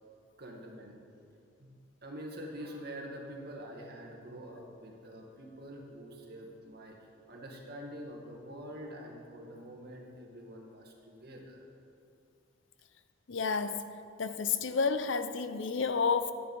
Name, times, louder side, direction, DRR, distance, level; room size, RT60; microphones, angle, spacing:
voice 1, 0.4-1.0 1.6-7.0 7.3-11.6, equal, 55° right, 0 dB, 1.8 m, -46 dB
voice 2, 13.3-13.9 14.2-16.3, left 5 dB, 75° left, 11 dB, 0.6 m, -30 dB
11.5 x 9.6 x 5.4 m, 2.5 s
head